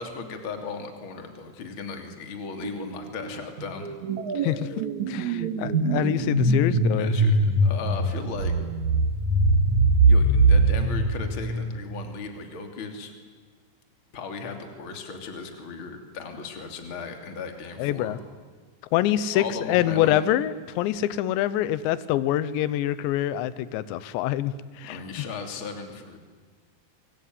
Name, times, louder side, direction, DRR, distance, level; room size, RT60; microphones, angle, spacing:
voice 1, 0.0-3.9 6.7-8.5 10.1-13.1 14.1-18.2 19.3-20.2 24.9-26.2, left 4 dB, 30° left, 5 dB, 3.0 m, -36 dB
sound 1, 2.6-3.0 3.2-12.0, right 2 dB, 50° right, 2.8 m, -22 dB
voice 2, 4.4-7.1 17.8-18.2 18.9-25.0, left 12 dB, 80° left, 16 dB, 3.1 m, -25 dB
24.5 x 23.5 x 9.5 m, 1.5 s
omnidirectional pair, 5.3 m